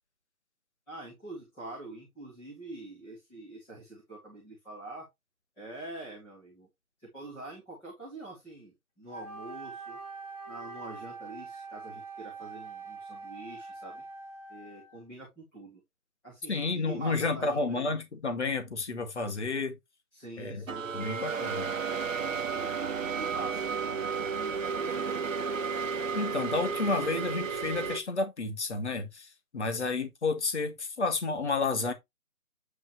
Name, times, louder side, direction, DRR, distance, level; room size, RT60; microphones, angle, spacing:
voice 1, 0.9-5.1 5.6-6.7 7.0-10.0 10.5-14.0 14.5-15.8 16.2-18.0 20.1-21.5 21.9-26.5 26.8-27.2, right 2 dB, 5° left, 1.7 m, -46 dB
Wind instrument woodwind instrument, 9.1-15.0, right 4 dB, 25° left, 2.1 m, -44 dB
voice 2, 16.5-19.8 20.4-20.6 20.9-21.7 26.1-31.9, left 3 dB, 50° left, 2.3 m, -31 dB
sound 1, 20.7-28.0, right 5 dB, 60° right, 1.1 m, -32 dB
9.0 x 5.4 x 3.1 m
figure-of-eight pair, 170°, 45 cm